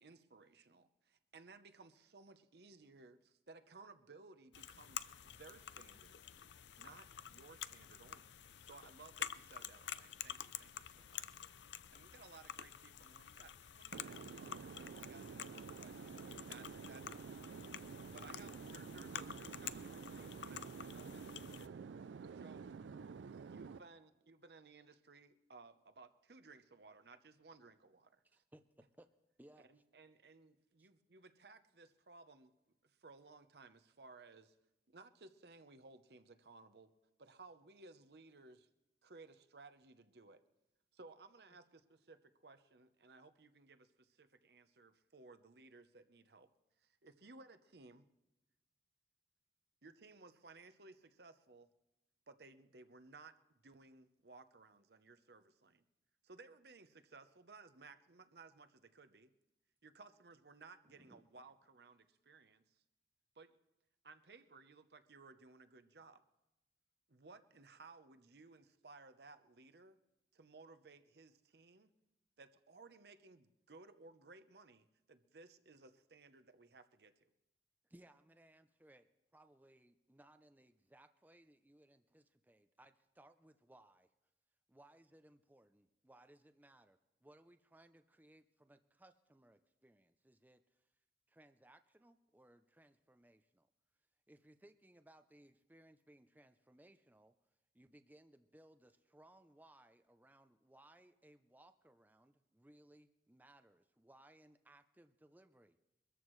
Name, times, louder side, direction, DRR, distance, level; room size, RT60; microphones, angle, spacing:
voice 1, 0.0-6.2 6.8-8.3 8.6-15.9 16.5-17.4 18.1-21.7 22.2-22.6 23.5-28.4 29.7-32.5 32.8-34.6 34.9-36.9 37.2-38.7 39.0-40.4 40.9-46.5 46.8-48.1 49.8-51.7 52.3-55.8 56.2-59.3 59.8-62.8 63.3-63.5 64.0-66.2 67.1-70.0 70.3-71.9 72.4-77.3, right 3 dB, 65° right, 0.8 m, -60 dB
sound 1, 4.5-21.7, left 9 dB, 80° left, 0.5 m, -50 dB
voice 2, 13.9-23.8, right 5 dB, 90° right, 0.4 m, -50 dB
voice 3, 28.3-29.1 29.4-29.8 30.8-30.9 60.9-61.3 77.8-84.1 84.7-90.9 91.3-93.7 94.3-97.4 97.7-105.8, right 1 dB, 10° right, 0.5 m, -65 dB
23.5 x 14.0 x 3.2 m
head